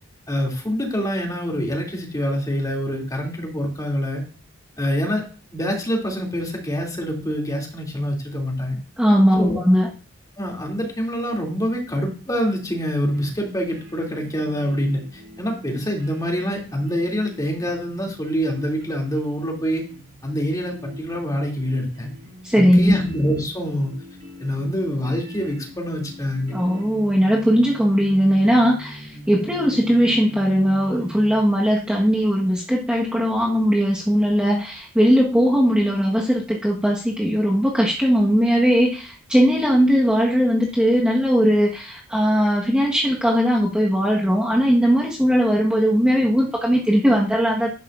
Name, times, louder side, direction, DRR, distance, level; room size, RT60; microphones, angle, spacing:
voice 1, 0.3-4.2 4.8-5.2 5.5-8.8 9.4-9.6 10.4-19.8 20.2-22.1 22.5-23.9 24.4-26.5, equal, 20° left, 0 dB, 2.8 m, -25 dB
voice 2, 9.0-9.9 22.4-23.0 26.5-47.8, equal, 5° right, -4 dB, 1.4 m, -19 dB
sound 1, 13.1-31.4, equal, 60° right, 4.2 m, -42 dB
11.5 x 10.5 x 2.6 m, 0.37 s
head